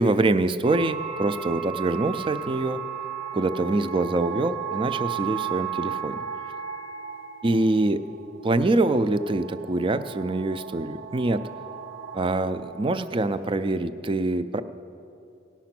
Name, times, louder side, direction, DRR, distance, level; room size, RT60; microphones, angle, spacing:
voice 1, 0.0-2.8 3.3-6.2 7.4-8.0 8.4-11.4 12.1-14.6, right 2 dB, 25° right, 11 dB, 0.3 m, -24 dB
sound 1, 0.6-13.5, right 8 dB, 85° right, 1.0 m, -35 dB
17.5 x 5.9 x 5.9 m, 2.6 s
head